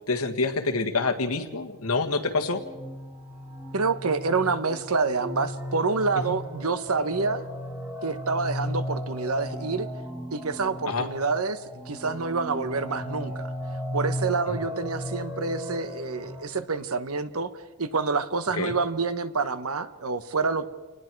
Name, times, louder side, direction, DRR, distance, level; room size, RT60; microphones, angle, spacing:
voice 1, 0.1-2.6 6.3-6.4 10.9-11.1 18.6-18.7, left 3 dB, 80° left, 5 dB, 1.8 m, -26 dB
sound 1, 1.7-16.4, equal, 10° right, 3.1 m, -36 dB
voice 2, 3.7-7.4 8.0-9.9 10.3-13.5 13.9-17.5 17.8-20.7, right 4 dB, 75° right, 11 dB, 1.2 m, -27 dB
28.5 x 19.5 x 4.7 m, 1.2 s
head